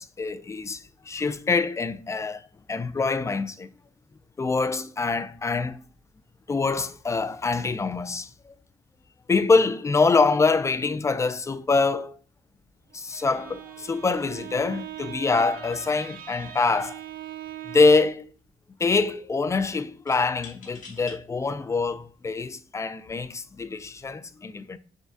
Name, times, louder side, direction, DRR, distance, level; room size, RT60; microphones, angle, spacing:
voice 1, 0.0-2.4 2.7-3.7 4.4-5.8 6.5-8.5 9.3-12.1 12.9-17.0 17.7-18.2 18.8-24.8, left 4 dB, 20° left, 0.3 m, -25 dB
Bowed string instrument, 12.9-18.3, right 11 dB, 80° right, 0.4 m, -41 dB
sound 1, 16.9-17.2 17.5-18.1 20.1-21.2 21.9-22.0 22.9-23.2, left 4 dB, 65° left, 1.2 m, -47 dB
6.1 x 2.2 x 2.6 m
cardioid pair, 95°, 15 cm